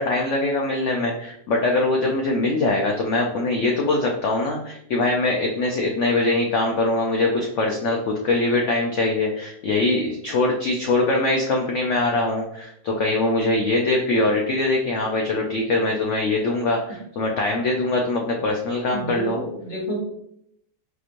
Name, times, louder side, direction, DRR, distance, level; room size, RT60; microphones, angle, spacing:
voice 1, 0.0-19.4, left 2 dB, 85° left, 0 dB, 0.6 m, -22 dB
voice 2, 18.9-20.0, equal, 40° left, -3 dB, 1.2 m, -30 dB
4.3 x 2.9 x 2.5 m, 0.74 s
omnidirectional pair, 1.8 m